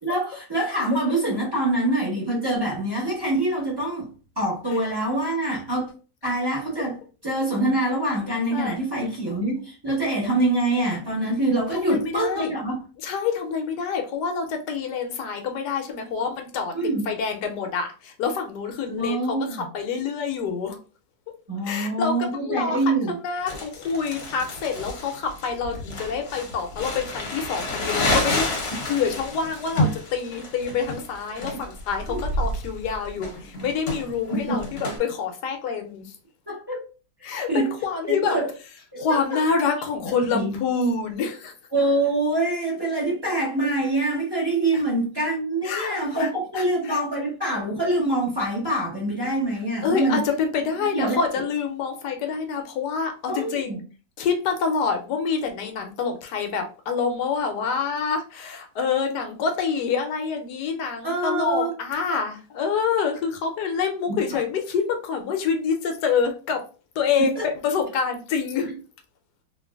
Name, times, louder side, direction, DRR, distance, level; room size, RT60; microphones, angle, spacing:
voice 1, 0.0-4.1 4.4-5.9 6.2-7.0 7.2-12.7 16.7-17.1 18.9-19.7 21.5-23.1 32.1-32.2 34.5-34.6 36.5-36.8 37.5-37.7 38.1-38.5 38.9-39.2 40.3-40.5 41.7-50.2 50.9-51.2 53.3-53.8 61.0-61.7 64.1-64.2 67.2-67.4 68.6-68.7, right 2 dB, 15° right, 1.0 m, -25 dB
voice 2, 11.7-12.5 13.0-16.7 17.1-20.8 21.6-22.8 23.1-36.1 37.2-38.4 39.0-41.5 44.7-44.8 45.6-46.3 46.5-47.0 49.8-53.8 54.2-66.6 67.0-68.7, left 5 dB, 75° left, 1.1 m, -27 dB
Crumpling crinkling, 23.5-35.0, left 1 dB, 50° left, 1.0 m, -29 dB
3.0 x 2.8 x 2.3 m
omnidirectional pair, 2.0 m